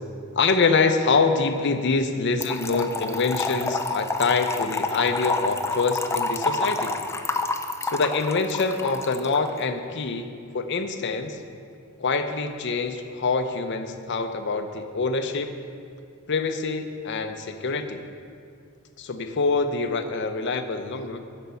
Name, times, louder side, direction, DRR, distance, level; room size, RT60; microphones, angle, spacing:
voice 1, 0.4-7.0 7.8-11.4 12.0-15.5 16.3-18.0 19.0-21.2, left 4 dB, 55° left, 8 dB, 0.6 m, -25 dB
Trickle dribble / Fill (with liquid), 2.4-9.5, left 2 dB, 15° left, 0.4 m, -28 dB
9.8 x 5.1 x 7.0 m, 2.3 s
head